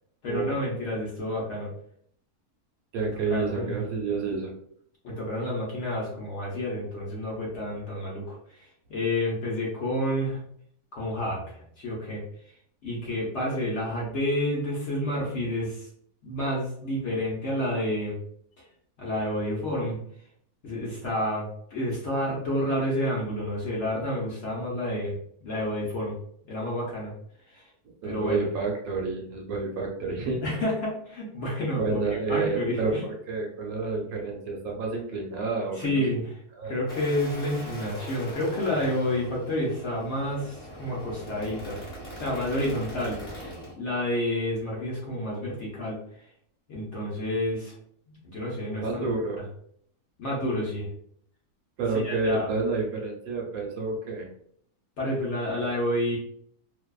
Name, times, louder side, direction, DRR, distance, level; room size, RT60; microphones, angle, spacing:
voice 1, 0.2-1.7 3.0-3.8 5.0-10.4 10.9-12.2 12.8-15.9 16.2-18.2 19.0-20.0 20.6-25.1 25.4-26.2 26.4-27.1 27.5-27.6 28.0-28.4 30.4-32.0 32.3-33.0 35.7-36.4 36.6-41.8 42.1-46.0 46.7-47.7 48.1-49.1 50.2-50.9 51.9-52.5 55.0-56.2, left 1 dB, 60° left, -4 dB, 0.8 m, -29 dB
voice 2, 2.9-4.5 28.0-30.6 31.8-36.0 36.6-36.8 48.7-49.4 51.8-54.3, right 3 dB, 70° right, 0 dB, 1.0 m, -29 dB
sound 1, 36.9-43.7, equal, 30° left, 1.0 m, -41 dB
2.6 x 2.2 x 2.2 m, 0.66 s
omnidirectional pair, 1.7 m